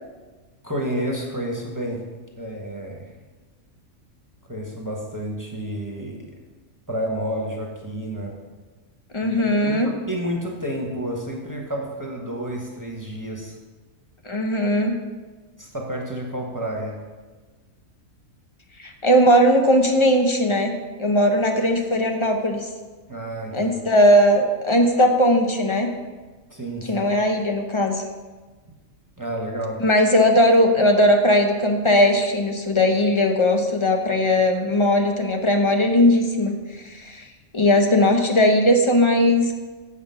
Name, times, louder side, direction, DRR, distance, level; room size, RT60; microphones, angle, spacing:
voice 1, 0.6-2.0 2.4-3.0 4.5-6.3 6.9-8.3 9.2-9.3 9.6-13.6 15.6-16.9 23.1-23.7 26.5-27.1 29.2-29.8, right 1 dB, 15° right, -1 dB, 1.1 m, -30 dB
voice 2, 9.1-9.9 14.2-15.0 18.8-22.7 23.5-25.9 26.9-28.0 29.8-37.2 37.5-39.5, left 1 dB, 30° left, 3 dB, 0.5 m, -18 dB
8.0 x 6.0 x 5.6 m, 1.3 s
omnidirectional pair, 1.5 m